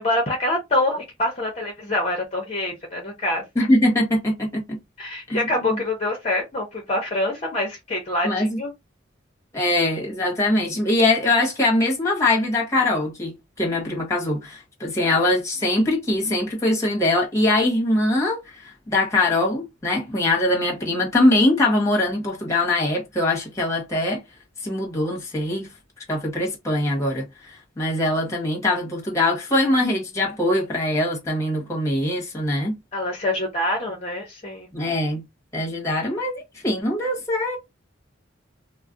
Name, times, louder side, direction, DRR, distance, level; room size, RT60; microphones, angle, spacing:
voice 1, 0.0-3.4 5.0-8.7 32.9-34.7, left 1 dB, 30° left, 0.6 m, -25 dB
voice 2, 3.5-4.8 5.3-5.4 5.7-5.8 8.2-8.6 9.5-24.2 24.6-25.7 26.1-32.8 34.7-35.2 35.5-37.6, left 1 dB, 15° left, 0.9 m, -22 dB
2.3 x 2.0 x 3.7 m
head